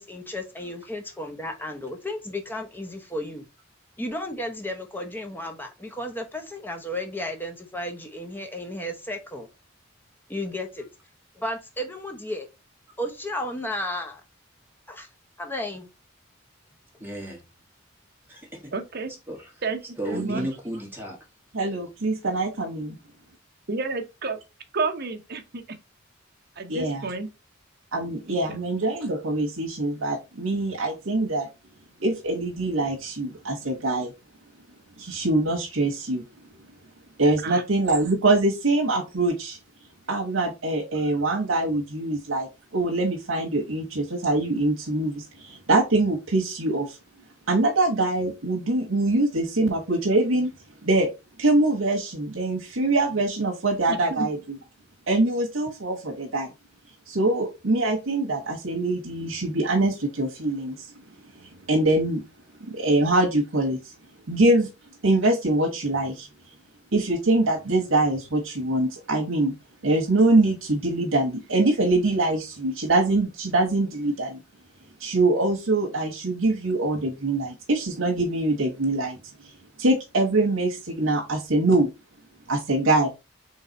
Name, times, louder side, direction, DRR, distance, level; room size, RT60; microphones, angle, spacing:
voice 1, 0.0-3.4 4.0-9.5 10.3-10.9 11.4-12.5 13.0-14.2 14.9-15.1 15.4-15.9, left 1 dB, 10° left, 0.8 m, -33 dB
voice 2, 17.0-17.4 18.3-18.7 19.3-19.5 20.0-21.2, equal, 10° right, 1.5 m, -34 dB
voice 3, 18.7-19.1 19.6-19.8 20.1-20.5 23.7-24.4 24.7-25.6 26.6-27.3 28.3-28.6 37.4-37.6 53.9-54.3, right 4 dB, 50° right, 0.8 m, -30 dB
voice 4, 21.5-23.0 26.7-27.0 27.9-31.5 32.0-34.1 35.0-36.2 37.2-39.6 40.1-42.5 42.7-47.0 47.5-50.5 50.8-51.1 51.4-54.4 55.1-56.5 57.1-60.9 61.4-62.2 62.6-63.9 64.3-64.7 65.0-66.3 66.9-69.5 69.8-74.4 75.0-79.5 79.8-81.9 82.5-83.1, right 2 dB, 90° right, 1.0 m, -24 dB
3.9 x 3.2 x 4.0 m
head